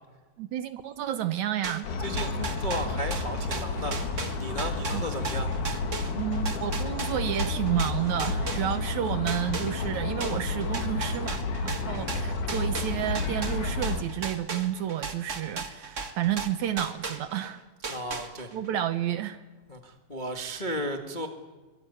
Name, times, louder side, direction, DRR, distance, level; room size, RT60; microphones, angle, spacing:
voice 1, 0.4-1.9 4.9-5.0 6.1-17.6 18.5-19.4, right 11 dB, 70° right, 11 dB, 2.0 m, -30 dB
sound 1, 1.6-9.0 9.3-17.5 17.8-18.7, right 4 dB, 35° right, 1.2 m, -36 dB
sound 2, 1.8-14.0, left 3 dB, 65° left, 3.1 m, -31 dB
voice 2, 2.0-4.0 4.4-5.5 12.0-12.2 17.9-18.5 19.7-21.3, equal, 30° left, 4 dB, 0.8 m, -34 dB
24.0 x 20.5 x 9.7 m, 1.3 s
omnidirectional pair, 4.0 m